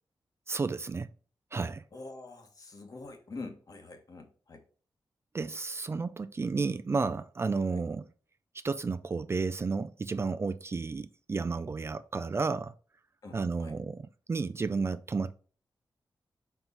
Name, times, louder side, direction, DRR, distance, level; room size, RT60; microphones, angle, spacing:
voice 1, 0.5-1.1 1.5-1.8 5.3-8.0 8.6-12.7 13.3-15.3, right 4 dB, 35° right, 0.4 m, -32 dB
voice 2, 1.9-4.6 7.7-7.8 13.2-13.7, left 3 dB, 50° left, 1.4 m, -45 dB
5.5 x 4.6 x 3.9 m
wide cardioid pair, 115°, 8 cm